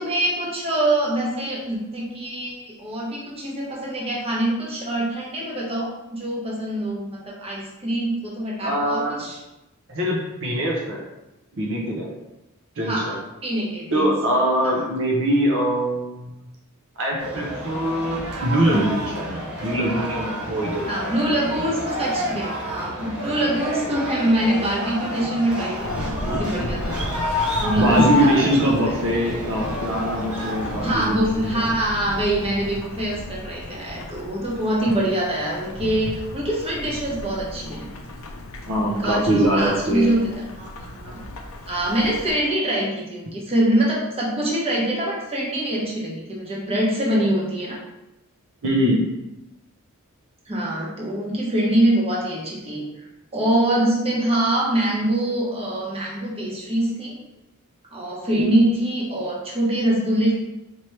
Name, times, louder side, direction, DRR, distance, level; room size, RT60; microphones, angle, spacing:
voice 1, 0.0-9.4 12.9-14.1 14.7-14.8 20.9-27.0 27.6-28.7 30.8-37.9 38.8-40.3 40.5-41.2 41.7-47.8 50.5-53.1 53.3-57.1 57.9-60.3, right 1 dB, 25° right, -4 dB, 1.0 m, -24 dB
voice 2, 8.6-9.2 9.9-11.0 11.5-12.1 12.8-13.1 13.9-16.3 17.0-20.9 27.8-31.7 38.7-40.1 48.6-49.1 58.4-58.5, equal, 60° right, -2 dB, 0.8 m, -23 dB
sound 1, 17.2-30.9, equal, 85° right, 1.0 m, -29 dB
Thunderstorm / Rain, 25.8-42.3, left 1 dB, 65° left, 0.5 m, -35 dB
4.5 x 3.0 x 3.2 m, 0.95 s
head